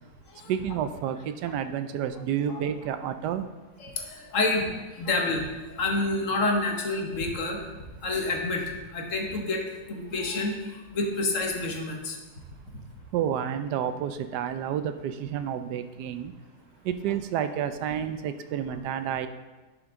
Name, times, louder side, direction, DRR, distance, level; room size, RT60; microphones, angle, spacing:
voice 1, 0.5-3.5 13.1-16.3 16.8-19.3, right 9 dB, 80° right, 9 dB, 1.2 m, -30 dB
voice 2, 3.8-4.7 5.0-5.4 5.8-7.6 8.0-8.6 8.9-9.6 9.9-10.5 10.9-12.2, left 2 dB, 50° left, 1 dB, 1.4 m, -28 dB
11.0 x 5.2 x 3.7 m, 1.2 s
omnidirectional pair, 1.8 m